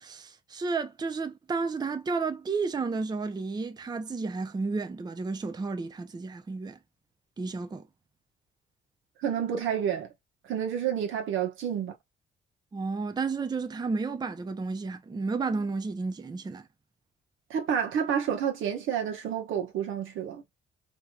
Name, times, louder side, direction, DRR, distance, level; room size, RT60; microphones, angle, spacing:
voice 1, 0.0-6.8 7.4-7.8 12.7-16.7, right 4 dB, 20° right, 0.5 m, -32 dB
voice 2, 9.2-10.1 10.5-11.9 17.5-20.4, right 8 dB, 80° right, 1.1 m, -29 dB
3.1 x 2.9 x 2.3 m
cardioid pair, 90°, 20 cm